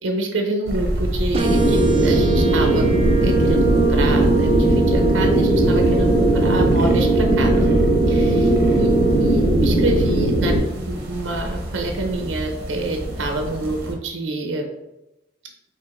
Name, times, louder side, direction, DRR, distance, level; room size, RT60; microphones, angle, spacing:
voice 1, 0.0-2.8 3.2-7.7 8.1-8.9 9.2-14.7, right 2 dB, 85° right, 3 dB, 0.5 m, -27 dB
sound 1, 0.6-13.9, equal, 55° right, 0.9 m, -29 dB
sound 2, 1.3-9.3, right 6 dB, 30° right, 0.5 m, -24 dB
sound 3, 1.4-10.6, right 1 dB, 90° left, 1.3 m, -18 dB
4.5 x 3.6 x 2.5 m, 0.94 s
head